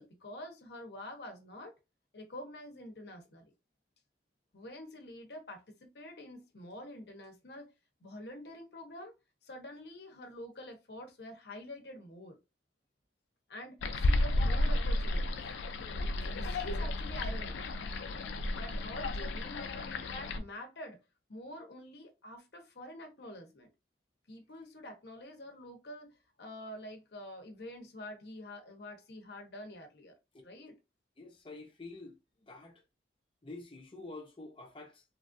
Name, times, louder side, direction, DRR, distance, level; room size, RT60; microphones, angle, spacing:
voice 1, 0.0-1.7 2.1-3.5 4.5-7.7 8.0-9.1 9.4-12.4 13.5-15.4 16.2-17.6 18.5-21.0 21.3-23.7 24.3-26.1 26.4-30.1 30.4-30.7, left 1 dB, 65° left, 0.8 m, -47 dB
sound 1, 13.8-20.4, left 1 dB, 85° left, 0.4 m, -32 dB
voice 2, 31.2-32.1 32.5-32.8 33.4-35.0, left 2 dB, 30° left, 0.6 m, -48 dB
3.1 x 2.4 x 2.5 m
head